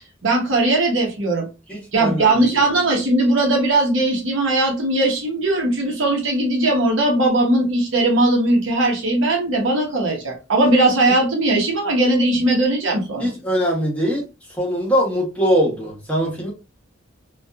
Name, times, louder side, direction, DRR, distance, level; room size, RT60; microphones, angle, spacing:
voice 1, 0.2-1.4 1.9-13.3, right 2 dB, 80° right, 0 dB, 0.9 m, -19 dB
voice 2, 1.7-2.6 13.2-14.2 14.6-16.5, equal, 5° left, -4 dB, 1.1 m, -22 dB
2.7 x 2.4 x 2.3 m, 0.28 s
head